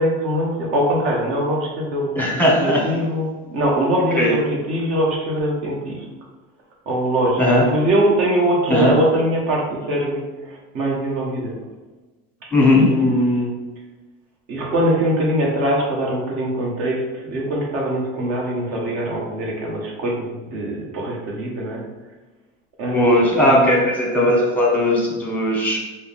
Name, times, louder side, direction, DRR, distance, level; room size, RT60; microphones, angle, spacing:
voice 1, 0.0-6.1 6.9-11.6 12.4-13.5 14.5-21.8 22.8-23.8, right 1 dB, 50° right, -2 dB, 1.2 m, -22 dB
voice 2, 2.1-2.8 4.2-4.3 7.4-7.6 8.7-8.9 12.5-12.9 22.9-25.8, left 1 dB, 5° left, -2 dB, 1.0 m, -17 dB
4.5 x 2.1 x 3.5 m, 1.2 s
supercardioid pair, 125°, 30 cm